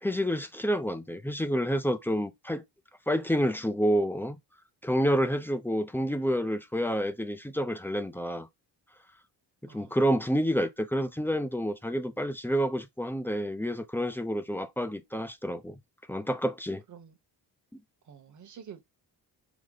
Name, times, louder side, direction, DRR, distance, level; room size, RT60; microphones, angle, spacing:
voice 1, 0.0-2.6 3.1-4.4 4.8-8.5 9.7-15.8 16.1-16.8, equal, 5° left, 0.4 m, -29 dB
voice 2, 9.7-10.0 16.9-17.2 18.0-18.9, right 8 dB, 45° right, 1.0 m, -48 dB
4.9 x 2.1 x 3.8 m
cardioid pair, 135°, 41 cm